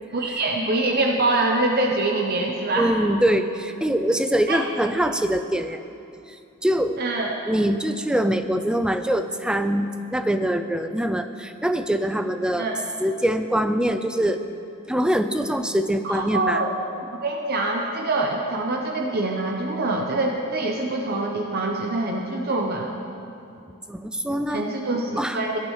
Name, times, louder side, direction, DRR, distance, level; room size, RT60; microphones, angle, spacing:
voice 1, 0.1-2.9 4.5-4.6 7.0-7.4 12.6-12.8 16.0-16.7 17.1-22.9 24.5-25.6, right 2 dB, 45° right, 1 dB, 0.8 m, -24 dB
voice 2, 2.8-5.8 6.3-6.4 6.6-7.0 7.5-12.7 13.0-14.4 14.9-16.6 23.9-24.7 25.2-25.4, right 1 dB, 5° right, 8 dB, 0.3 m, -23 dB
17.0 x 10.5 x 3.1 m, 2.6 s
head